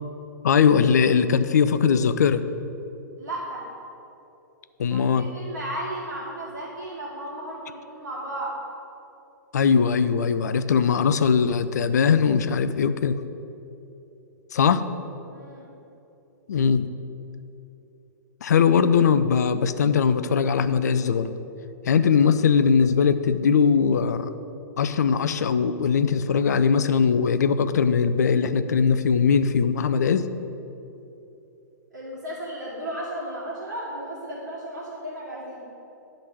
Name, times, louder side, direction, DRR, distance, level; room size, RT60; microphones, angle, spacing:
voice 1, 0.4-2.4 4.8-5.3 9.5-13.2 14.5-14.8 16.5-16.9 18.4-21.3 21.9-24.3 24.8-30.3, left 6 dB, 65° left, 12 dB, 0.4 m, -20 dB
voice 2, 3.2-3.7 4.9-8.6 15.3-15.7 31.9-35.6, right 1 dB, 70° right, -7 dB, 1.9 m, -34 dB
11.0 x 3.9 x 6.1 m, 3.0 s
figure-of-eight pair, 110°, 10 cm